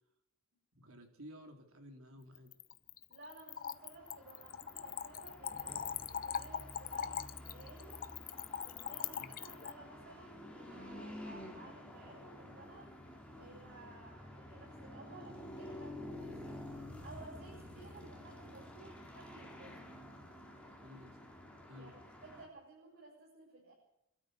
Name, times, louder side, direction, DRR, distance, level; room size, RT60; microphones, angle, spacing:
voice 1, 0.8-2.5 9.2-9.4 20.8-21.2 21.7-21.9, equal, 75° right, 4 dB, 4.1 m, -53 dB
Splash splatter / Trickle dribble, 2.3-9.7, left 8 dB, 40° left, 0.7 m, -42 dB
voice 2, 3.1-8.0 8.6-12.9 13.4-16.6 17.0-19.9 21.7-23.7, right 2 dB, 50° right, -3 dB, 7.5 m, -56 dB
sound 1, 3.6-22.5, left 1 dB, 5° left, 4.0 m, -50 dB
27.5 x 13.0 x 8.1 m, 0.82 s
head